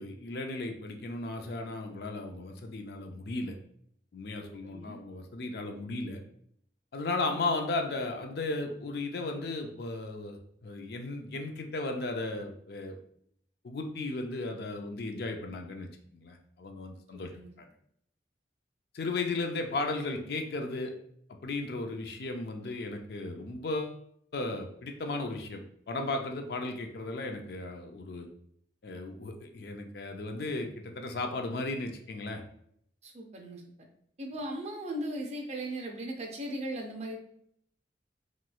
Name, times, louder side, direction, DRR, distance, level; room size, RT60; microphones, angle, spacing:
voice 1, 0.0-3.6 4.1-6.2 6.9-13.0 13.6-17.3 17.6-17.7 18.9-20.9 21.4-24.0 24.3-25.6 25.9-28.3 28.8-32.4, left 2 dB, 60° left, 4 dB, 0.4 m, -35 dB
voice 2, 4.4-5.0 17.1-17.5 33.0-33.6 34.2-37.2, right 1 dB, 35° right, 1 dB, 0.5 m, -38 dB
3.1 x 3.0 x 2.3 m, 0.68 s
head